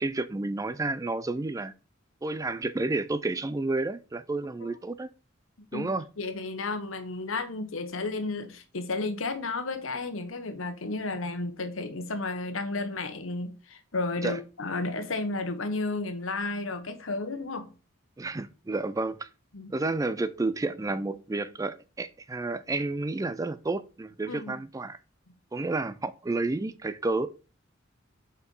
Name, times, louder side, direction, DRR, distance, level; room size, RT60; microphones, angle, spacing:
voice 1, 0.0-1.7 2.2-5.1 5.7-6.1 14.2-14.4 18.2-19.3 19.7-25.0 25.5-27.3, right 2 dB, 15° right, 0.4 m, -30 dB
voice 2, 6.2-17.7 19.5-19.7 24.3-24.5, left 3 dB, 85° left, 1.2 m, -32 dB
6.8 x 4.4 x 5.4 m
head